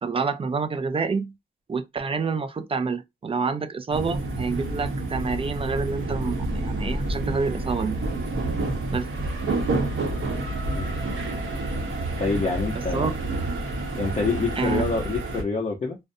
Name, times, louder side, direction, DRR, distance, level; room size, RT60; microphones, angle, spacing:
voice 1, 0.0-1.3 1.7-8.0 8.9-9.1 12.7-13.1 14.6-14.9, right 4 dB, 30° right, 0.3 m, -28 dB
sound 1, 3.9-15.4, right 2 dB, 85° right, 0.9 m, -28 dB
voice 2, 12.2-13.1 13.9-16.0, left 4 dB, 35° left, 0.6 m, -26 dB
2.5 x 2.1 x 2.6 m
wide cardioid pair, 105°, 20 cm